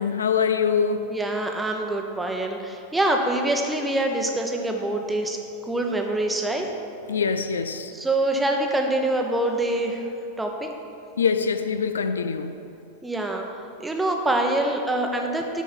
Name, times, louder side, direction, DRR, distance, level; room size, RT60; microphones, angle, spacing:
voice 1, 0.0-1.0 7.1-7.9 11.2-12.6, left 6 dB, 70° left, 9 dB, 0.5 m, -24 dB
voice 2, 1.1-5.4 5.7-6.7 7.9-10.0 10.4-10.7 13.0-13.4 13.8-15.6, right 1 dB, 10° right, 2 dB, 0.9 m, -25 dB
8.8 x 5.3 x 6.0 m, 2.7 s
figure-of-eight pair, 90°, 0 cm